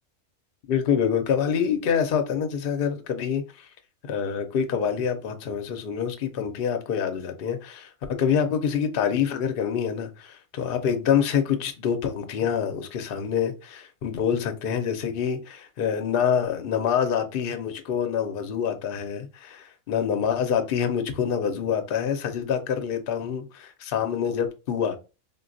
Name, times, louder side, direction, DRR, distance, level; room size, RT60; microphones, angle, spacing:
voice 1, 0.7-3.7 4.1-7.9 8.2-25.0, left 7 dB, 60° left, 0.6 m, -26 dB
3.8 x 2.2 x 2.5 m
omnidirectional pair, 1.5 m